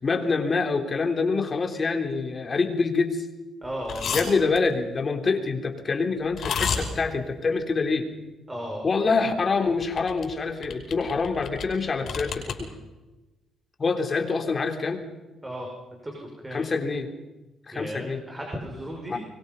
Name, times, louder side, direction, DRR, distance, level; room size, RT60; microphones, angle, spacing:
voice 1, 0.0-3.3 4.1-8.1 8.8-12.7 13.8-15.0 16.5-17.1 17.7-18.2 19.1-19.2, left 4 dB, 35° left, 5 dB, 3.4 m, -26 dB
voice 2, 3.6-4.1 8.5-8.8 15.4-15.7 16.0-16.1 16.4-16.6 17.7-19.2, equal, 15° right, -1 dB, 6.2 m, -34 dB
sound 1, 3.8-4.2 4.5-4.6 6.3-6.8 9.8-10.3 10.6-11.7 12.0-12.5, left 7 dB, 60° left, 5.4 m, -29 dB
25.0 x 22.0 x 5.5 m, 1.1 s
cardioid pair, 90°, 0 cm